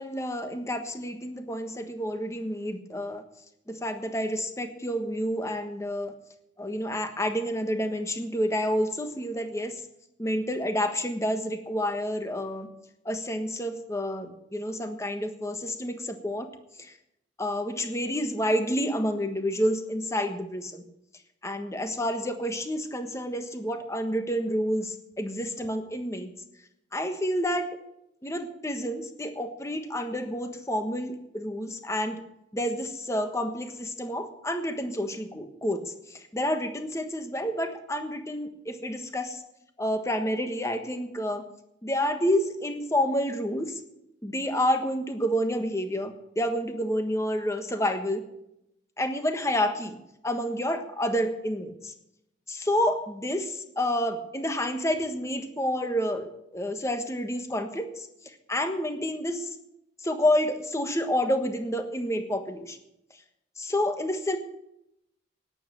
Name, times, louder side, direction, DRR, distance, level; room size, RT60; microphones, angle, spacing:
voice 1, 0.0-3.2 3.7-6.1 6.6-9.8 10.2-12.7 13.0-16.5 16.8-16.9 17.4-20.8 21.4-26.3 26.9-27.7 28.2-32.2 32.5-35.8 36.1-39.4 39.8-41.4 41.8-43.7 44.2-48.2 49.0-50.0 50.2-51.9 52.5-58.1 58.5-59.5 60.0-62.8 63.6-64.4, equal, 15° left, 7 dB, 1.4 m, -29 dB
11.5 x 9.9 x 7.8 m, 0.81 s
head